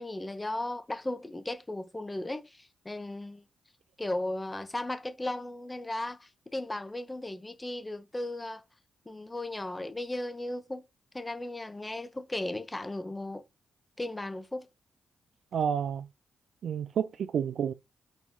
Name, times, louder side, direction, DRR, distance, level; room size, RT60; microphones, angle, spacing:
voice 1, 0.0-3.4 4.0-8.6 9.1-10.8 11.1-13.4 14.0-14.7, left 1 dB, 20° left, 1.2 m, -36 dB
voice 2, 15.5-16.1 16.6-17.7, right 8 dB, 70° right, 0.4 m, -30 dB
4.5 x 4.3 x 5.4 m
cardioid pair, 65°, 0 cm